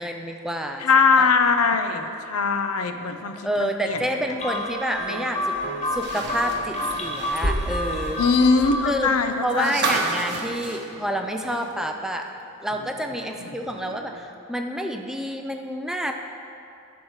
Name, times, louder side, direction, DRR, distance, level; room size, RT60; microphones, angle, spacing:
voice 1, 0.0-0.8 1.2-1.3 1.9-2.1 3.4-8.2 8.9-9.1 9.4-12.3 12.6-16.1, equal, ahead, 4 dB, 0.4 m, -29 dB
voice 2, 0.8-4.0 8.2-9.8, left 4 dB, 75° left, 7 dB, 0.6 m, -21 dB
sound 1, 3.9-8.9 9.2-12.0 12.7-14.2, right 2 dB, 75° right, 1.0 m, -41 dB
sound 2, 4.4-9.1, left 1 dB, 30° left, 1.1 m, -28 dB
sound 3, 5.8-11.9 12.2-12.3 13.7-13.8, right 3 dB, 50° right, 1.0 m, -32 dB
11.5 x 4.7 x 6.4 m, 2.7 s
head